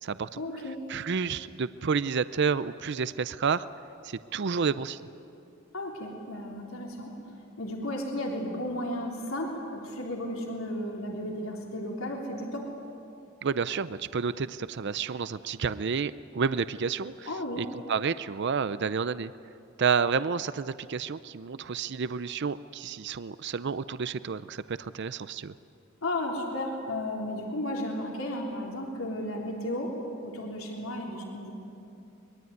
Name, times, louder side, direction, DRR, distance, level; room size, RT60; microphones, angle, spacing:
voice 1, 0.4-0.8 5.7-7.1 7.6-12.6 17.3-17.6 26.0-29.9 30.2-31.5, left 1 dB, 85° left, 0 dB, 3.6 m, -34 dB
voice 2, 0.9-3.7 4.0-5.1 13.4-17.3 17.6-19.3 19.8-25.5, right 5 dB, 55° right, 15 dB, 0.5 m, -30 dB
24.0 x 22.0 x 9.4 m, 2.6 s
head